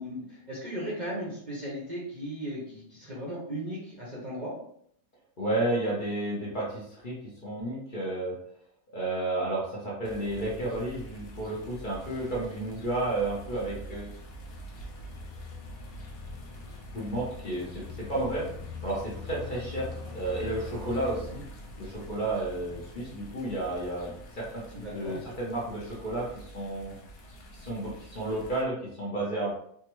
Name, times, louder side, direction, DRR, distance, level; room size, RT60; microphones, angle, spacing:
voice 1, 0.0-4.5 24.7-25.2, equal, 40° right, -6 dB, 0.7 m, -36 dB
voice 2, 5.4-8.4 8.9-14.1 16.9-18.5 18.8-19.9 20.1-21.4 21.8-24.6 24.9-26.9 27.5-29.5, right 2 dB, 40° left, -6 dB, 0.8 m, -32 dB
sound 1, 10.0-28.6, left 1 dB, 80° left, 1.1 m, -44 dB
3.4 x 2.1 x 2.9 m, 0.69 s
omnidirectional pair, 1.5 m